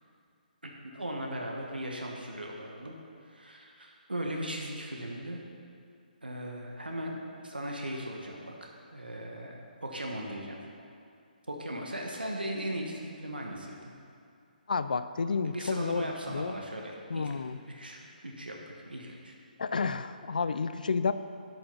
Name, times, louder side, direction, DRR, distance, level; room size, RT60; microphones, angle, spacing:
voice 1, 0.6-3.0 3.2-5.4 6.2-10.6 11.5-13.9 15.4-17.3 17.7-19.3, right 1 dB, 80° right, 0 dB, 1.4 m, -38 dB
voice 2, 14.7-16.5 17.1-17.6 19.6-21.1, left 5 dB, 60° left, 12 dB, 0.5 m, -30 dB
12.0 x 6.1 x 5.5 m, 2.4 s
figure-of-eight pair, 140°, 5 cm